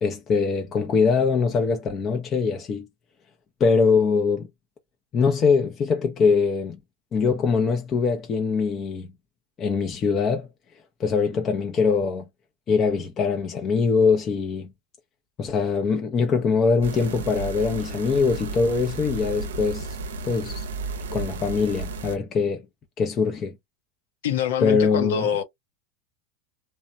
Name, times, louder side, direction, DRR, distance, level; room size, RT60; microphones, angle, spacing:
voice 1, 0.0-2.9 3.6-4.5 5.1-6.8 7.1-9.1 9.6-10.5 11.0-12.3 12.7-14.7 15.4-20.0 20.2-20.7 21.1-22.6 23.0-23.5 24.6-25.3, left 5 dB, 35° left, 0.6 m, -22 dB
sound 1, 16.8-22.2, right 3 dB, 80° right, 0.5 m, -33 dB
voice 2, 24.2-25.4, left 8 dB, 75° left, 0.7 m, -25 dB
3.0 x 2.1 x 2.4 m
hypercardioid pair, 95°, 0 cm